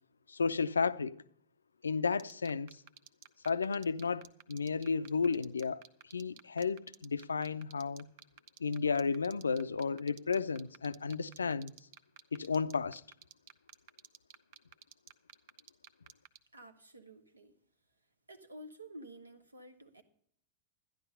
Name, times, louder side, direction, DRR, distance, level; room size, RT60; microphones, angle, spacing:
voice 1, 0.3-1.2 1.8-2.8 3.4-5.8 6.1-8.1 8.6-11.7 12.3-13.0, left 5 dB, 75° left, 0.4 m, -33 dB
sound 1, 2.2-16.4, right 10 dB, 50° right, 0.7 m, -52 dB
voice 2, 16.5-17.6 18.3-20.0, right 1 dB, 80° right, 1.1 m, -51 dB
12.5 x 10.5 x 5.5 m
figure-of-eight pair, 90°, 0 cm